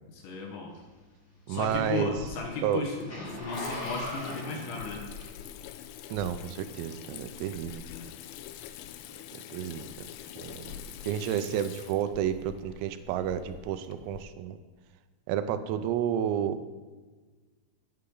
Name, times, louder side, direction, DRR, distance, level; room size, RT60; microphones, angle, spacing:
voice 1, 0.1-0.7 1.5-5.1 7.9-8.1, left 4 dB, 65° left, 1 dB, 3.3 m, -35 dB
Zipper (clothing), 0.7-5.7 6.2-6.4, equal, 20° left, 3.4 m, -40 dB
voice 2, 1.5-2.1 2.6-2.8 6.1-7.8 9.5-9.9 10.4-14.6 15.3-16.7, right 10 dB, 90° right, 10 dB, 3.5 m, -31 dB
Water tap faucet / Sink (filling or washing), 1.6-14.2, left 10 dB, 85° left, 2.9 m, -45 dB
14.5 x 9.7 x 3.9 m, 1.4 s
omnidirectional pair, 6.0 m